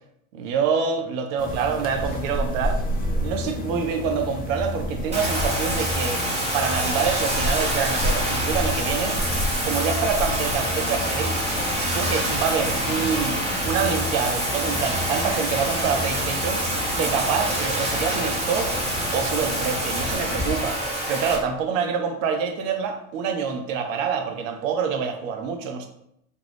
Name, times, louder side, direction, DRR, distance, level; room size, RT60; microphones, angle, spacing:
voice 1, 0.3-2.8 3.2-6.2 6.5-9.2 9.6-11.4 11.9-13.4 13.6-16.6 17.0-18.7 19.1-20.8 21.1-25.9, right 6 dB, 65° right, 5 dB, 0.6 m, -26 dB
sound 1, 1.4-20.7, left 1 dB, 20° left, 0.6 m, -30 dB
Bathtub (filling or washing), 5.1-21.4, right 1 dB, 15° right, 0.9 m, -26 dB
2.4 x 2.2 x 3.2 m, 0.77 s
hypercardioid pair, 80°, 43 cm